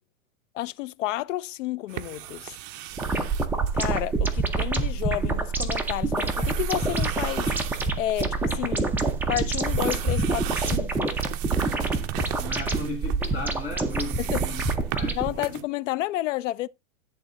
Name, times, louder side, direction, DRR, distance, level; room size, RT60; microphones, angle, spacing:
voice 1, 0.5-2.6 3.7-7.5 8.0-9.0 9.3-11.2 14.2-14.5 15.1-16.7, left 15 dB, 65° left, 0.5 m, -31 dB
sound 1, 1.9-15.6, right 13 dB, 40° right, 0.7 m, -38 dB
sound 2, 2.9-15.3, right 3 dB, 5° right, 0.7 m, -26 dB
voice 2, 12.4-14.6 14.9-15.5, left 2 dB, 15° left, 2.6 m, -35 dB
10.5 x 3.6 x 3.8 m
hypercardioid pair, 130°, 40 cm